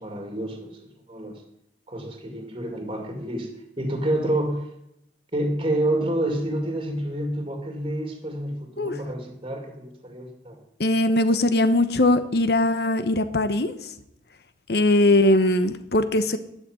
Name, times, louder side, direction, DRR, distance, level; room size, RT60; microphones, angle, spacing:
voice 1, 0.0-1.4 1.9-3.5 3.8-4.6 5.3-10.6, right 1 dB, 30° right, 4 dB, 2.2 m, -28 dB
voice 2, 10.8-13.9 14.7-16.4, left 1 dB, 60° left, 11 dB, 1.0 m, -20 dB
11.5 x 6.5 x 9.5 m, 0.80 s
head